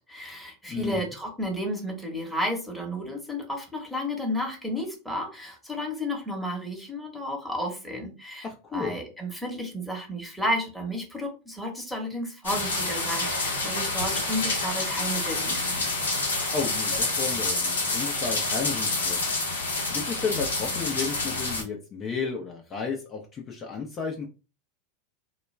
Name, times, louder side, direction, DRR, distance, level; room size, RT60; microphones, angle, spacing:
voice 1, 0.1-15.9, equal, ahead, 0 dB, 1.0 m, -32 dB
voice 2, 0.7-1.0 8.4-8.9 16.5-19.3 19.9-24.3, left 5 dB, 30° left, 0 dB, 0.5 m, -32 dB
sound 1, 12.4-21.6, left 2 dB, 80° left, 0.7 m, -28 dB
2.3 x 2.2 x 3.2 m, 0.33 s
hypercardioid pair, 90°, 0 cm